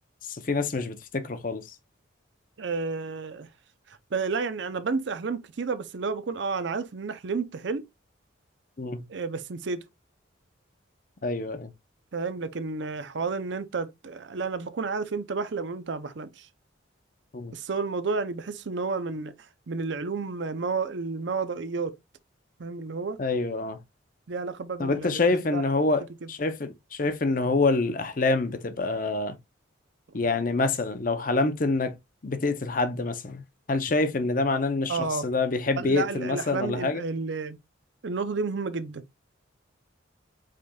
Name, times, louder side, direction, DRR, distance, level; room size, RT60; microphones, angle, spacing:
voice 1, 0.2-1.6 8.8-9.0 11.2-11.7 17.3-17.5 23.2-23.8 24.8-29.4 30.1-32.0 32.2-33.4 33.7-37.0, left 3 dB, 40° left, 0.6 m, -26 dB
voice 2, 2.6-3.5 3.9-7.8 9.1-9.8 12.1-16.5 17.5-21.9 22.6-23.2 24.3-25.2 25.5-25.6 26.2-26.3 34.9-35.2 35.8-37.6 38.0-39.0, right 4 dB, 60° right, 0.5 m, -31 dB
5.0 x 4.2 x 2.3 m
head